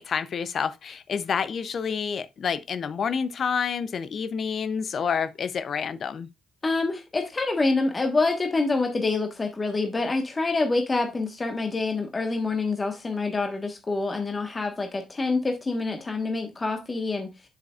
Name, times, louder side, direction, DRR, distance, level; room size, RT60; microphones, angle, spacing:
voice 1, 0.0-6.3, left 6 dB, 50° left, 0.6 m, -28 dB
voice 2, 6.6-17.3, left 3 dB, 30° left, 1.4 m, -26 dB
7.5 x 7.1 x 2.5 m
hypercardioid pair, 50°, 0 cm